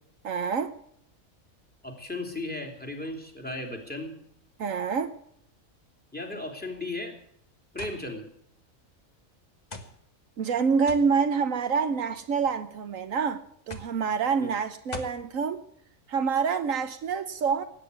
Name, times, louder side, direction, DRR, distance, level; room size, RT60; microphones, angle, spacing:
voice 1, 0.2-0.7 4.6-5.1 10.4-13.4 13.7-15.6 16.1-17.6, right 6 dB, 70° right, 1.2 m, -26 dB
voice 2, 1.8-4.1 6.1-7.2 7.7-8.2 14.4-14.5, left 2 dB, 5° left, 2.9 m, -35 dB
sound 1, 7.8-8.0 8.9-9.0 9.7-9.9 10.9-11.1 12.1-12.5 13.7-14.0 14.9-15.2, left 2 dB, 30° left, 1.6 m, -40 dB
17.0 x 9.7 x 8.2 m
omnidirectional pair, 1.4 m